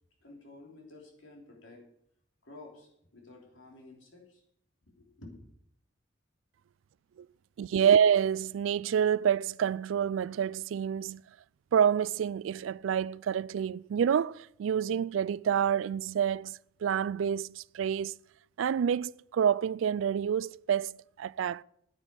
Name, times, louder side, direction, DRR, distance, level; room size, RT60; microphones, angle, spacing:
voice 1, 0.2-1.8 2.4-4.4 4.9-5.3, left 2 dB, 80° left, 3.2 m, -51 dB
voice 2, 7.6-11.2 11.7-16.5 16.8-18.1 18.6-21.6, right 8 dB, 80° right, 0.3 m, -28 dB
9.8 x 9.0 x 6.7 m
head